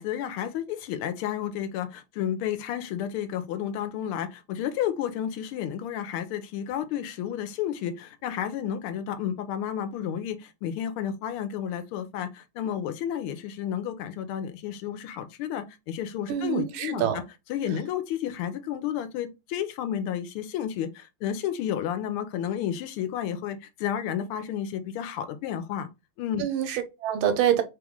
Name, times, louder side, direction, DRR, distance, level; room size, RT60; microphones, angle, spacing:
voice 1, 0.0-17.2 17.5-25.9 26.2-26.4, left 9 dB, 90° left, 1.5 m, -31 dB
voice 2, 16.3-17.2 26.4-27.6, right 10 dB, 75° right, 1.5 m, -26 dB
3.6 x 3.0 x 3.6 m
omnidirectional pair, 2.4 m